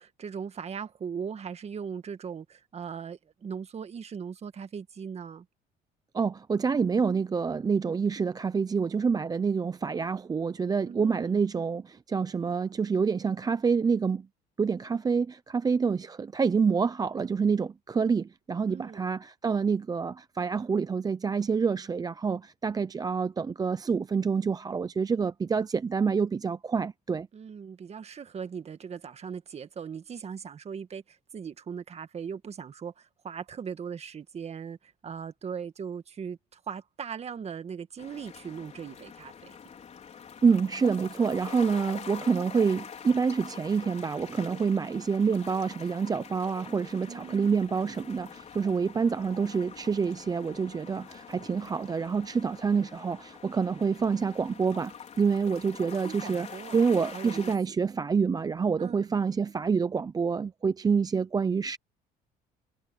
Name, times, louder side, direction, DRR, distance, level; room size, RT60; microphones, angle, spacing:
voice 1, 0.0-5.5 10.8-11.4 18.7-19.1 27.3-39.6 47.1-47.7 56.0-57.5 58.8-59.1, right 7 dB, 40° right, 1.7 m, -39 dB
voice 2, 6.1-14.3 14.6-27.3 40.4-61.8, right 5 dB, 20° right, 0.5 m, -27 dB
sound 1, 38.0-57.6, left 7 dB, 40° left, 4.3 m, -45 dB
cardioid pair, 110°, 17 cm